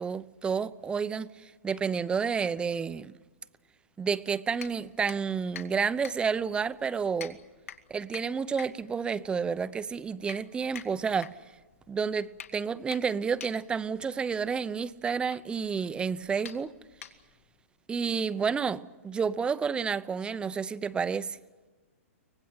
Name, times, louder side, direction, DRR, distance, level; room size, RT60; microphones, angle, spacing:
voice 1, 0.0-3.1 4.0-7.4 7.9-11.3 11.9-16.7 17.9-21.4, right 6 dB, 10° right, 0.8 m, -30 dB
sound 1, 4.6-17.6, left 8 dB, 75° left, 2.5 m, -48 dB
24.5 x 18.5 x 8.9 m
hypercardioid pair, 135°, 8 cm